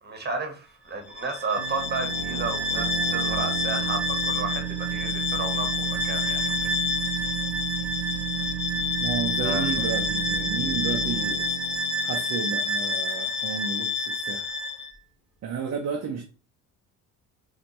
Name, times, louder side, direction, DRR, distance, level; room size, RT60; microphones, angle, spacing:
voice 1, 0.0-6.7 7.2-7.3 9.4-9.7, right 3 dB, 20° right, 1.4 m, -32 dB
Bowed string instrument, 1.0-14.9, left 3 dB, ahead, 1.6 m, -28 dB
sound 1, 1.6-13.1, right 9 dB, 90° right, 0.7 m, -33 dB
voice 2, 9.0-11.5 12.0-14.5 15.4-16.2, right 6 dB, 35° right, 0.7 m, -32 dB
4.2 x 2.5 x 3.0 m
hypercardioid pair, 55°, 45 cm